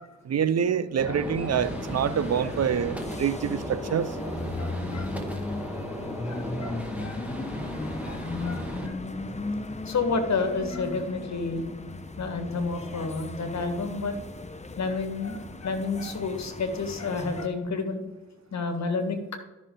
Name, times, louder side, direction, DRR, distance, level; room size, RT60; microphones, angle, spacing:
voice 1, 0.2-4.2, right 8 dB, 55° right, 15 dB, 0.6 m, -26 dB
Gunshot gunfire, 1.0-8.9, equal, 5° right, 2.1 m, -36 dB
voice 2, 1.1-1.5 4.2-5.4 6.2-7.3 8.0-9.0 9.8-11.6 12.2-14.1 14.8-18.0 18.5-19.2, left 4 dB, 60° left, 7 dB, 1.7 m, -31 dB
sound 1, 1.5-17.5, left 2 dB, 20° left, 1.0 m, -37 dB
13.0 x 6.0 x 3.8 m, 1.1 s
supercardioid pair, 50°, 31 cm